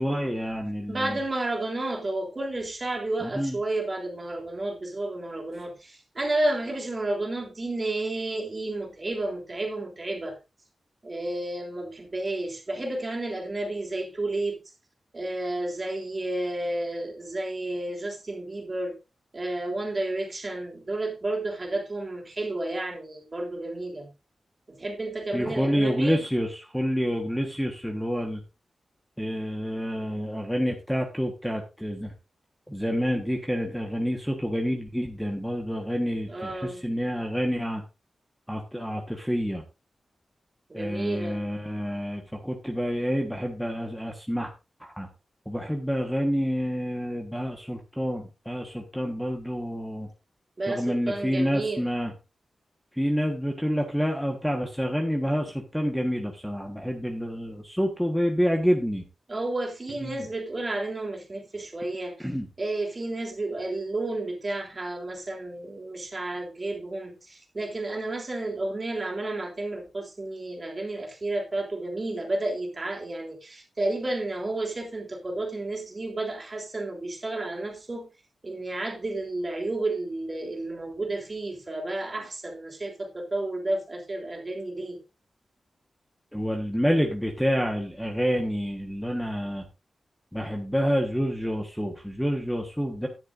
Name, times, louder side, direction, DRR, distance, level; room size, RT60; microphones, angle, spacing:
voice 1, 0.0-1.2 3.2-3.6 25.3-28.4 29.2-32.1 32.7-37.8 38.5-39.6 40.7-44.5 44.8-45.1 45.4-50.1 50.7-52.1 52.9-59.0 60.0-60.2 62.2-62.5 86.3-89.6 90.3-93.1, equal, ahead, 1.4 m, -28 dB
voice 2, 0.9-10.4 11.0-14.6 15.1-18.9 19.3-24.1 24.7-26.2 36.3-36.9 40.7-41.4 50.6-51.9 59.3-62.1 62.6-78.1 78.4-85.0, right 2 dB, 30° right, 3.4 m, -31 dB
12.5 x 10.0 x 2.6 m
wide cardioid pair, 130°, 0 cm